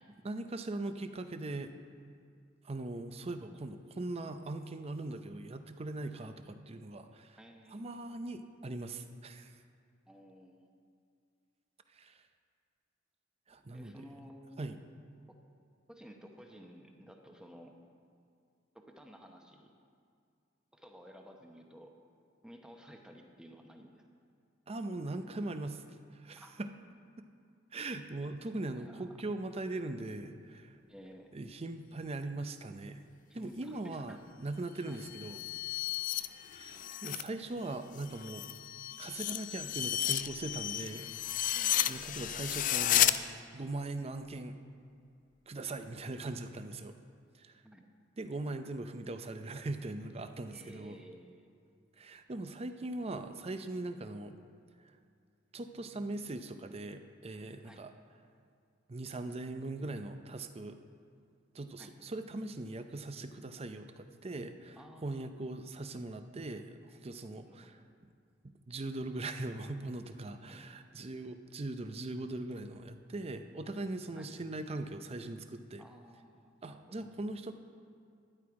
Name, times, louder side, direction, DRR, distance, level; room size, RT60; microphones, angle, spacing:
voice 1, 0.2-1.7 2.6-7.4 7.7-9.6 11.9-12.2 13.5-14.1 14.6-14.8 24.7-25.8 26.1-26.7 27.7-30.8 31.3-33.0 33.3-35.4 36.5-38.5 39.0-41.1 41.5-41.6 41.9-44.6 45.5-46.9 47.4-47.6 48.2-51.0 52.0-54.4 55.5-57.9 58.9-60.9 61.5-64.8 65.0-67.8 68.7-75.8 76.6-77.5, right 2 dB, 30° right, 9 dB, 0.6 m, -40 dB
voice 2, 7.4-8.0 10.1-10.7 13.7-14.9 15.3-15.4 15.9-17.7 18.7-19.7 20.7-21.9 22.4-24.0 26.4-26.5 28.8-29.0 30.9-31.3 33.3-34.2 34.9-35.0 36.1-36.4 41.5-42.0 47.6-47.9 50.5-51.5 57.6-57.8 61.8-61.9 64.7-65.4 67.5-67.9 70.4-70.7 74.1-74.3 75.8-77.1, equal, 5° right, 2 dB, 0.9 m, -54 dB
sound 1, 34.9-37.3 37.6-43.2, left 12 dB, 45° left, 0.3 m, -33 dB
12.0 x 9.6 x 4.8 m, 2.3 s
head